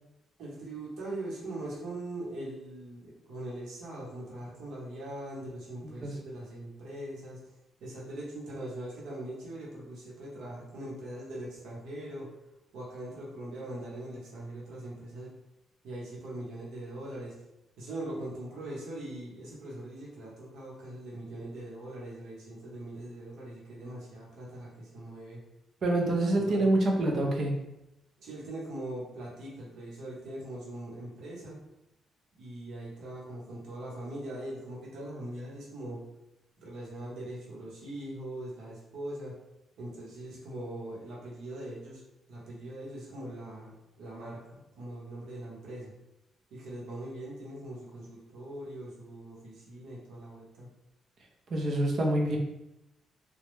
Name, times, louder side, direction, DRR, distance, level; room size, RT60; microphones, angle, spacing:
voice 1, 0.4-7.4 7.8-12.3 12.7-15.3 15.8-17.3 17.8-25.4 26.4-26.7 28.2-31.6 32.4-36.0 36.6-39.3 39.8-42.0 42.3-45.9 46.5-50.7, right 1 dB, 75° right, -5 dB, 0.9 m, -41 dB
voice 2, 25.8-27.5 51.5-52.4, right 1 dB, 50° right, 1 dB, 0.5 m, -26 dB
2.2 x 2.0 x 3.1 m, 0.90 s
cardioid pair, 90°, 0 cm